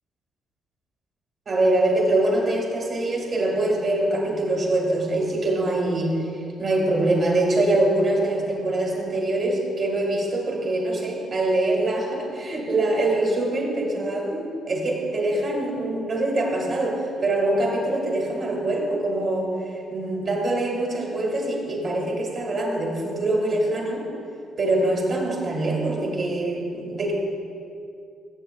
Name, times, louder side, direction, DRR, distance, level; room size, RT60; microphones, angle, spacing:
voice 1, 1.5-19.5 19.9-24.1 24.6-27.1, right 2 dB, 45° right, -1 dB, 2.1 m, -24 dB
13.0 x 7.5 x 2.4 m, 2.4 s
cardioid pair, 90°, 0 cm